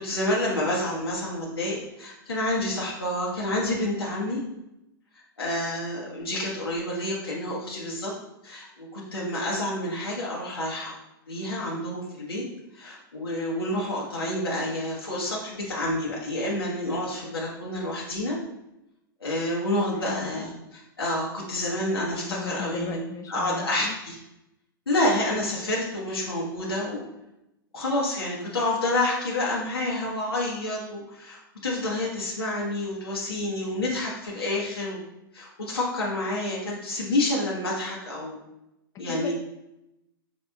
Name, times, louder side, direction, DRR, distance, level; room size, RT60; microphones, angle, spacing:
voice 1, 0.0-4.4 5.4-8.1 8.4-11.0 11.3-12.4 12.7-18.4 19.2-23.0 23.3-24.2 24.9-27.0 27.7-35.0 35.3-38.4 39.0-39.3, left 1 dB, 90° left, -4 dB, 0.9 m, -28 dB
voice 2, 19.8-20.5 22.3-24.0 39.1-39.3, left 7 dB, 25° left, 5 dB, 0.3 m, -36 dB
4.5 x 4.0 x 2.3 m, 0.88 s
hypercardioid pair, 105°, 12 cm